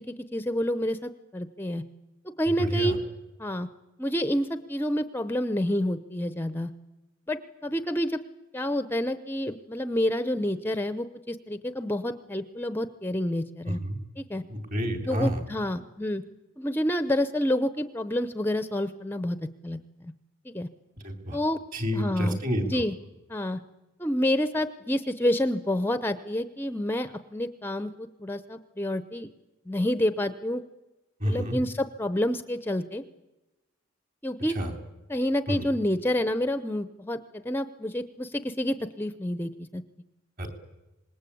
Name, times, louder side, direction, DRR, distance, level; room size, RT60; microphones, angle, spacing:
voice 1, 0.0-1.8 2.4-3.0 3.4-3.7 4.0-6.7 7.3-8.2 8.5-13.8 14.2-14.4 15.0-16.2 16.6-19.4 19.6-20.1 20.4-20.7 21.3-21.6 21.9-22.9 23.3-23.6 24.0-29.3 29.7-30.6 31.2-33.0 34.2-34.6 35.1-39.8, left 1 dB, 10° left, 11 dB, 0.8 m, -28 dB
voice 2, 2.6-2.9 13.7-14.0 14.5-15.4 21.0-21.4 21.7-22.6 31.2-31.6 34.6-34.7 35.5-35.7 40.4-40.5, equal, 40° right, 6 dB, 3.7 m, -29 dB
26.0 x 20.5 x 8.6 m, 1.0 s
head